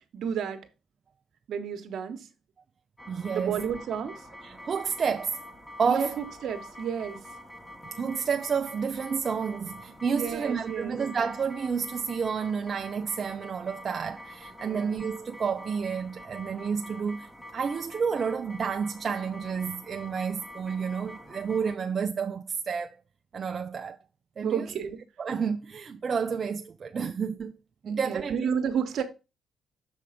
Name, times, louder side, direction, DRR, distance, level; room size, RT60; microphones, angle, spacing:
voice 1, 0.1-0.6 1.5-2.3 3.3-4.2 5.8-7.2 10.1-11.0 14.6-15.0 24.4-25.0 27.8-29.0, right 7 dB, 70° right, 1.1 m, -31 dB
sound 1, 3.0-21.8, left 1 dB, 15° left, 1.3 m, -46 dB
voice 2, 3.1-3.6 4.4-5.4 5.8-6.2 8.0-23.0 23.3-24.0 24.4-24.7 25.2-27.6 27.8-28.4, right 6 dB, 45° right, 0.4 m, -30 dB
6.8 x 3.7 x 5.0 m
cardioid pair, 90°, 0 cm